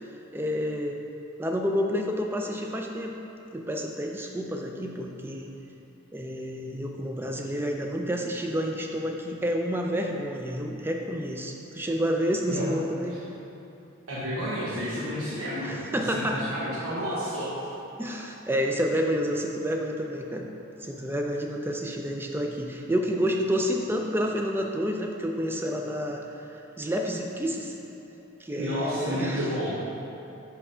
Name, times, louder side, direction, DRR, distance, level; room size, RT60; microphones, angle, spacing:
voice 1, 0.3-1.0 1.4-3.1 3.5-5.5 6.1-13.2 15.6-16.4 18.0-20.5 20.8-27.7 28.4-29.5, equal, 10° right, 2 dB, 0.3 m, -29 dB
voice 2, 14.1-17.6 28.5-29.7, equal, 85° right, -9 dB, 1.1 m, -31 dB
5.4 x 4.7 x 4.9 m, 2.9 s
head